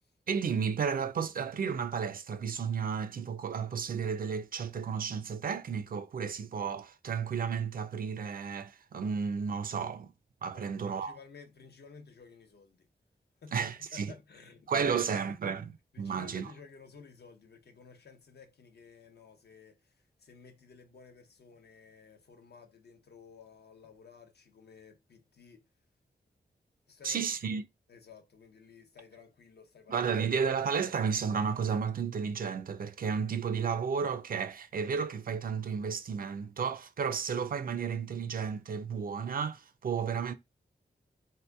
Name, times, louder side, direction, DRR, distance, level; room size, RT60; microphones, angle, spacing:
voice 1, 0.3-10.1 10.4-11.2 13.5-14.1 14.7-15.7 16.0-16.5 27.0-27.6 29.9-40.3, right 6 dB, 55° right, 0.4 m, -32 dB
voice 2, 10.5-12.9 13.4-15.4 15.9-25.7 26.9-27.5 27.9-30.1, left 5 dB, 75° left, 0.8 m, -54 dB
3.5 x 2.8 x 2.2 m
wide cardioid pair, 105°, 17 cm